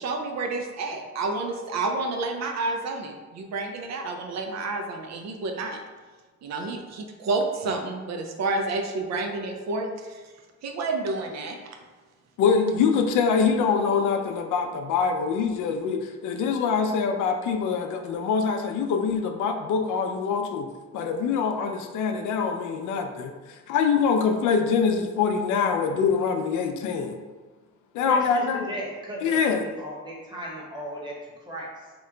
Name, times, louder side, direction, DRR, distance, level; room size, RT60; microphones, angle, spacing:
voice 1, 0.0-5.8 6.4-10.2 10.6-11.8, right 3 dB, 60° right, 4 dB, 0.5 m, -30 dB
voice 2, 12.4-20.7 20.9-27.2 27.9-28.6 29.2-29.6, left 6 dB, 80° left, 5 dB, 0.4 m, -24 dB
voice 3, 28.0-31.9, equal, 15° right, -4 dB, 1.1 m, -36 dB
2.9 x 2.1 x 3.7 m, 1.3 s
cardioid pair, 90°, 30 cm